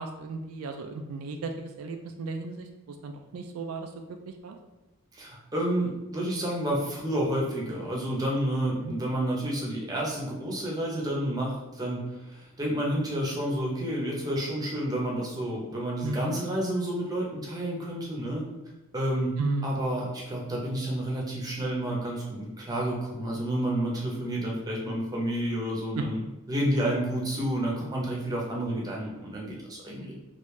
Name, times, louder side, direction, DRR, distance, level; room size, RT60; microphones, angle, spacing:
voice 1, 0.0-3.9 4.3-4.6 8.8-8.9 16.0-16.4 19.4-19.7 26.0-26.1, right 3 dB, 75° right, 4 dB, 0.3 m, -34 dB
voice 2, 5.1-18.4 18.9-19.3 19.6-26.2 26.5-30.1, right 1 dB, 15° right, -3 dB, 0.7 m, -30 dB
3.3 x 2.5 x 3.1 m, 1.1 s
head